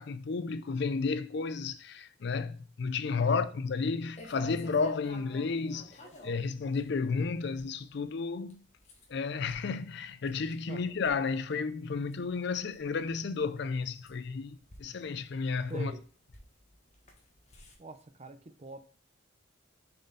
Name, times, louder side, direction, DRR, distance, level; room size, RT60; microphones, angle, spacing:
voice 1, 0.0-5.9 6.2-8.6 9.1-15.9, left 4 dB, 55° left, 0.4 m, -32 dB
sound 1, 4.2-17.8, equal, 35° left, 1.2 m, -54 dB
voice 2, 6.0-6.3 10.7-10.8 15.7-16.0 17.8-18.8, right 3 dB, 30° right, 0.6 m, -45 dB
6.7 x 4.2 x 3.9 m
head